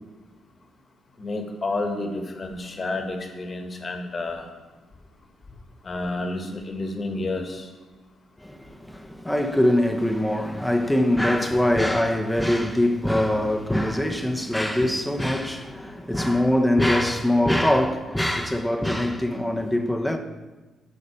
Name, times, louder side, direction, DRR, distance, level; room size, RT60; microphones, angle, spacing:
voice 1, 1.2-4.5 5.8-7.7 11.8-11.9 14.8-14.9, left 2 dB, 35° left, 1.5 m, -30 dB
voice 2, 8.4-20.2, left 1 dB, 5° left, 0.9 m, -23 dB
11.5 x 4.2 x 6.8 m
cardioid pair, 90°, 0 cm